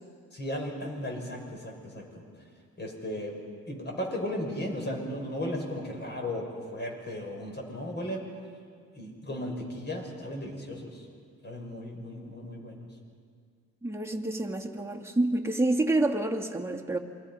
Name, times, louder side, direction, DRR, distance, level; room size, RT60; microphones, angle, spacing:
voice 1, 0.3-2.3 2.8-3.3 3.7-8.3 8.9-11.1 11.4-12.9, left 1 dB, 35° left, 1 dB, 6.1 m, -36 dB
voice 2, 13.8-17.0, right 2 dB, 10° right, 1 dB, 2.2 m, -28 dB
28.0 x 22.0 x 5.7 m, 2.1 s
cardioid pair, 90°, 30 cm